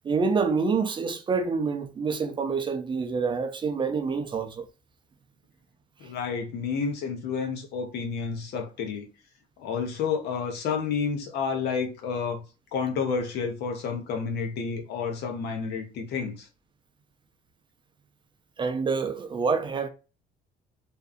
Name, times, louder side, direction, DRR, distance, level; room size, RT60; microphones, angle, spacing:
voice 1, 0.0-4.7 18.6-19.9, right 5 dB, 30° right, 0.4 m, -27 dB
voice 2, 6.0-9.1 9.6-12.4 12.7-16.5, left 5 dB, 75° left, 0.8 m, -30 dB
2.6 x 2.3 x 2.4 m
cardioid pair, 110°, 17 cm